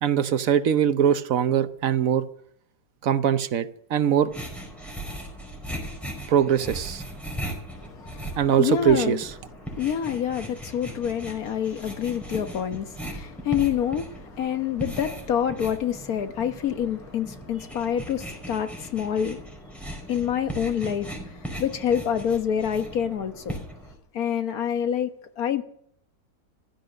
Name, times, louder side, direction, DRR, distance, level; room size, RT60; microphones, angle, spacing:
voice 1, 0.0-2.3 3.0-4.3 6.3-7.0 8.4-9.3, right 9 dB, 65° right, 1.1 m, -22 dB
sound 1, 4.3-23.9, right 1 dB, ahead, 5.0 m, -38 dB
voice 2, 7.7-9.2 9.6-19.5 20.1-21.3 21.6-23.6 24.1-25.6, left 9 dB, 70° left, 1.6 m, -27 dB
15.5 x 13.0 x 6.7 m
omnidirectional pair, 1.6 m